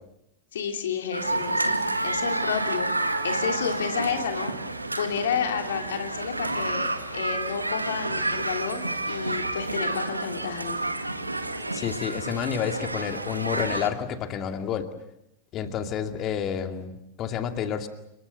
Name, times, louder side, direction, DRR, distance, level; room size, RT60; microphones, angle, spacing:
voice 1, 0.5-1.8 2.0-2.9 3.2-4.6 5.0-10.8, left 7 dB, 60° left, 4 dB, 2.8 m, -30 dB
sound 1, 1.1-13.9, right 2 dB, 85° right, 1.8 m, -29 dB
voice 2, 11.7-14.9 15.5-17.9, left 8 dB, 35° left, 6 dB, 2.5 m, -29 dB
29.5 x 23.5 x 6.8 m, 0.82 s
figure-of-eight pair, 90°, 0 cm